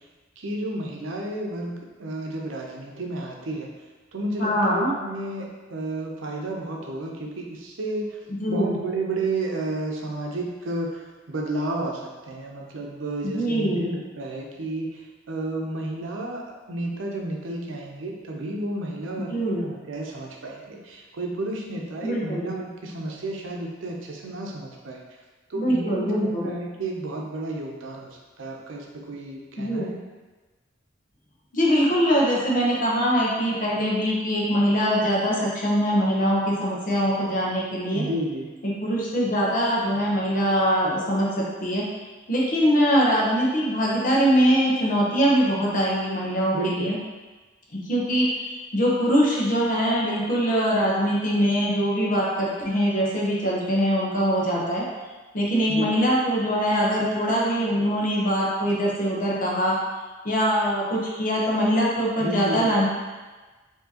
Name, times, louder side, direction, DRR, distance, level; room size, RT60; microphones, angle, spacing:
voice 1, 0.4-3.7 4.1-25.0 25.5-30.0 37.9-38.5 46.5-46.9 55.7-55.9 62.2-62.7, right 2 dB, 90° right, 0 dB, 0.7 m, -32 dB
voice 2, 4.4-4.9 8.3-8.8 13.2-13.9 19.3-19.7 22.0-22.6 25.5-26.5 29.6-29.9 31.5-38.0 38.6-41.9 42.3-47.0 47.7-48.5 48.7-54.9 55.3-59.8 60.2-62.9, equal, 45° left, -4 dB, 0.8 m, -23 dB
4.6 x 2.8 x 2.9 m, 1.3 s
head